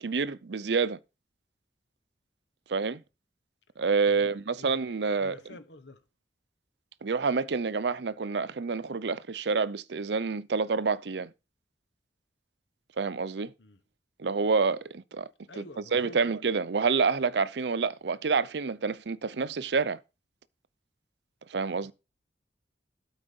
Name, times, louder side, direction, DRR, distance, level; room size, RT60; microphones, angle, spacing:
voice 1, 0.0-1.0 2.7-3.0 3.8-5.4 7.0-11.3 13.0-13.5 14.2-15.3 15.6-15.7 15.9-20.0 21.5-21.9, right 4 dB, 70° right, 0.6 m, -28 dB
voice 2, 4.1-6.0 13.6-13.8 15.5-16.3 21.8-21.9, left 2 dB, 85° left, 1.3 m, -49 dB
12.5 x 4.8 x 5.3 m
head